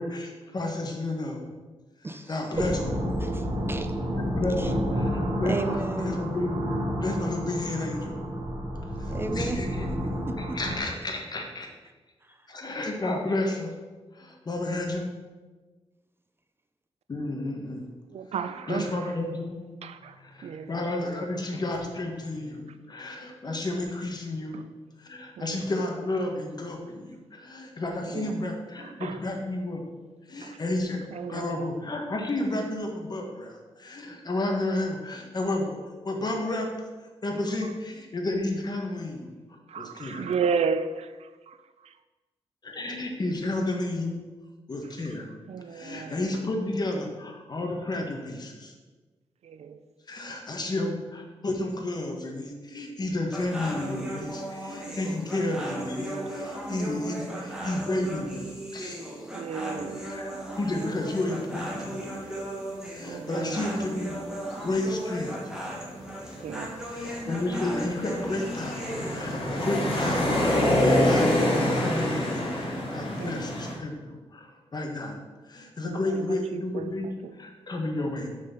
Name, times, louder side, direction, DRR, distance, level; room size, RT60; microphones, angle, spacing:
voice 1, 0.0-1.4 2.3-2.8 4.1-5.6 6.0-8.2 9.0-9.9 10.5-11.7 12.5-13.7 14.1-15.0 17.1-17.9 18.7-19.6 20.2-24.6 25.0-29.8 30.3-35.8 36.0-36.7 37.2-39.3 39.7-40.3 42.6-44.2 44.7-45.3 45.7-48.7 50.1-58.4 58.7-59.2 60.1-62.1 62.8-64.1 64.6-65.4 66.9-75.2 75.5-77.1 77.4-78.3, left 2 dB, 40° left, 1.1 m, -31 dB
voice 2, 2.0-2.7 3.2-3.9 4.6-4.7 5.4-6.1 9.1-9.6 10.0-10.6 12.2-12.4, right 2 dB, 20° right, 0.4 m, -34 dB
sound 1, 2.5-10.8, equal, 65° right, 1.8 m, -30 dB
voice 3, 18.1-19.2 19.8-20.7 24.5-24.7 25.4-25.6 28.0-28.4 28.8-29.2 30.4-30.6 31.1-31.8 37.6-37.7 39.7-42.0 45.0-45.1 45.5-46.3 49.4-49.8 59.3-60.1 63.1-63.8 66.4-66.8 73.2-73.6 75.8-77.4, right 6 dB, 85° right, 0.4 m, -34 dB
sound 2, 53.3-69.3, right 1 dB, 5° right, 1.3 m, -36 dB
sound 3, 65.7-65.8 66.5-73.7, left 1 dB, 55° left, 1.7 m, -26 dB
6.3 x 4.2 x 5.6 m
wide cardioid pair, 130°, 11 cm